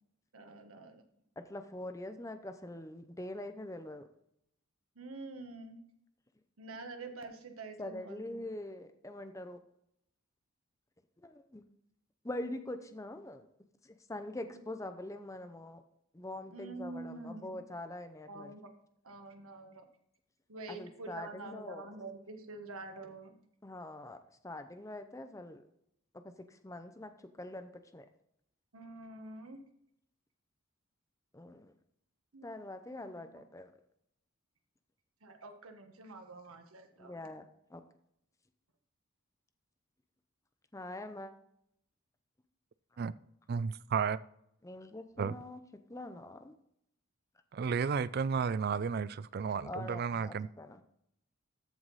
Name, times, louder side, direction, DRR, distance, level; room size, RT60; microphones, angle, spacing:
voice 1, 0.3-1.0 4.9-5.8 6.6-8.4 14.4-14.6 16.5-17.6 18.3-18.7 19.0-19.9 20.5-23.4 28.7-29.6 32.3-32.5 32.9-33.4 35.2-37.2, right 2 dB, 75° right, 1.3 m, -47 dB
voice 2, 1.4-4.1 7.8-9.6 11.2-11.6 12.2-13.5 13.8-15.8 16.1-18.5 20.7-21.9 23.6-24.2 24.4-25.6 26.1-27.1 27.4-28.1 31.3-31.7 32.4-33.7 37.0-37.8 40.7-41.3 44.6-45.6 45.9-46.5 49.7-50.8, left 1 dB, 15° left, 0.6 m, -44 dB
voice 3, 43.5-44.2 45.2-45.3 47.5-50.5, right 6 dB, 45° right, 0.3 m, -32 dB
13.5 x 4.7 x 4.1 m
head